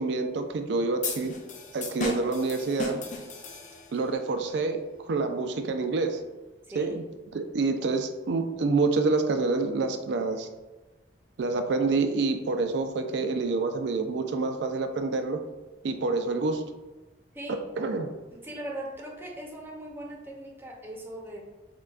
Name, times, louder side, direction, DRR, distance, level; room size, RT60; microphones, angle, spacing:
voice 1, 0.0-1.3 1.7-3.0 3.9-6.2 6.8-7.0 7.3-10.5 11.4-15.4 15.8-16.6 17.8-18.1, right 3 dB, 70° right, 6 dB, 0.4 m, -27 dB
sound 1, 1.0-4.1, left 3 dB, 45° left, 0.5 m, -35 dB
voice 2, 6.7-7.0 17.3-17.6 18.3-21.4, right 1 dB, 15° right, -1 dB, 0.6 m, -39 dB
5.8 x 2.2 x 2.4 m, 1.2 s
head